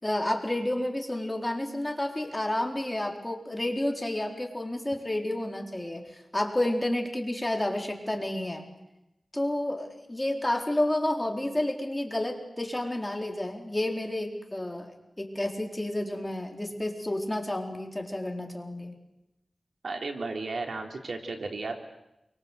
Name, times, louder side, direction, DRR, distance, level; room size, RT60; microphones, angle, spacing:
voice 1, 0.0-8.7 9.3-14.9 15.2-18.9, left 1 dB, 15° left, 3 dB, 4.2 m, -30 dB
voice 2, 19.8-21.7, right 3 dB, 75° right, 3 dB, 3.7 m, -34 dB
28.5 x 24.5 x 8.2 m, 0.89 s
wide cardioid pair, 90°, 0 cm